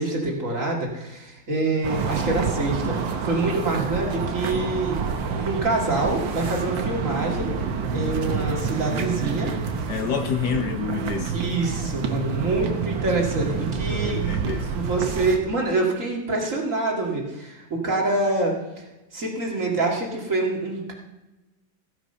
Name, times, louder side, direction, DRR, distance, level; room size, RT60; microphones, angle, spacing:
voice 1, 0.0-5.0 5.4-7.5 7.9-9.5 10.5-10.6 11.3-14.2 14.7-20.9, right 2 dB, 40° right, -1 dB, 2.5 m, -26 dB
sound 1, 1.8-15.4, right 5 dB, 70° right, 1.8 m, -28 dB
voice 2, 9.9-11.4 13.9-14.7, left 7 dB, 65° left, 7 dB, 1.3 m, -28 dB
15.5 x 7.9 x 5.5 m, 1.0 s
omnidirectional pair, 2.2 m